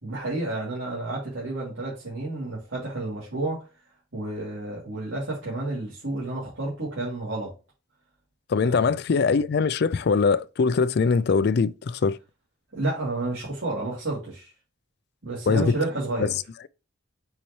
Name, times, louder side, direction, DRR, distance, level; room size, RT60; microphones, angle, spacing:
voice 1, 0.0-3.7 4.1-7.5 8.6-8.9 12.7-14.5 15.2-16.3, right 2 dB, 75° right, 3.1 m, -30 dB
voice 2, 8.5-12.2 15.5-15.7, left 5 dB, 55° left, 0.4 m, -22 dB
7.0 x 5.6 x 3.2 m
head